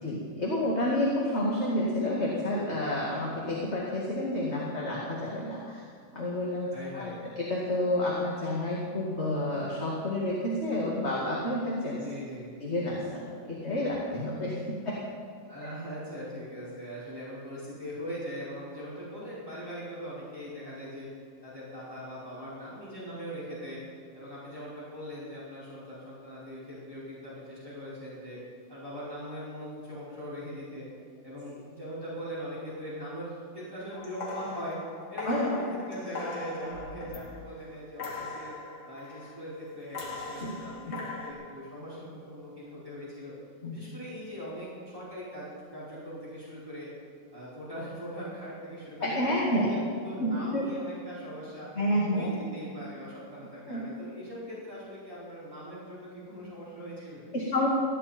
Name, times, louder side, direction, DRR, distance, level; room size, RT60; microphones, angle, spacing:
voice 1, 0.0-5.8 6.1-6.7 6.9-7.0 7.4-12.0 12.6-14.6 14.8-14.9 35.2-35.5 40.4-40.5 40.9-41.0 43.6-43.8 49.0-49.7 50.2-50.6 51.8-52.3 53.7-53.8 57.3-57.7, left 1 dB, 35° left, -4 dB, 2.3 m, -29 dB
voice 2, 6.7-7.2 12.0-12.5 15.5-21.1 21.4-23.8 24.1-28.4 28.7-30.8 31.2-34.8 35.1-38.5 38.9-43.3 43.7-45.5 45.7-46.9 47.3-51.7 52.1-57.3, equal, 10° right, -10 dB, 5.2 m, -41 dB
sound 1, 33.9-37.6 38.0-39.4 39.9-41.3, left 3 dB, 50° left, 2.6 m, -40 dB
19.0 x 15.5 x 4.4 m, 2.1 s
omnidirectional pair, 2.2 m